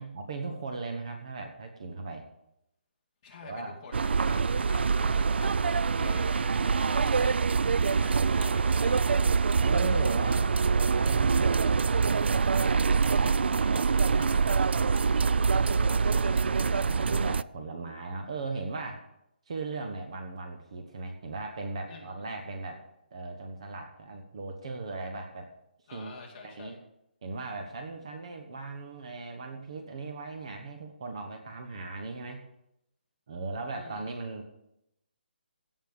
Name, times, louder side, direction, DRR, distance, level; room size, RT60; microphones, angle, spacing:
voice 1, 0.0-2.3 3.4-3.8 4.7-5.1 6.8-7.1 9.5-11.9 13.1-13.4 14.0-19.1 19.5-22.8 23.1-25.5 25.9-26.2 26.4-26.8 27.2-32.4 33.3-34.5, right 3 dB, 35° right, 5 dB, 1.1 m, -38 dB
voice 2, 3.2-9.2 12.6-14.4 21.9-22.3 25.9-26.8 33.7-34.2, left 4 dB, 20° left, -4 dB, 2.4 m, -48 dB
sound 1, 3.9-17.4, right 5 dB, 80° right, 0.3 m, -25 dB
16.5 x 5.7 x 6.8 m, 0.81 s
hypercardioid pair, 180°, 6 cm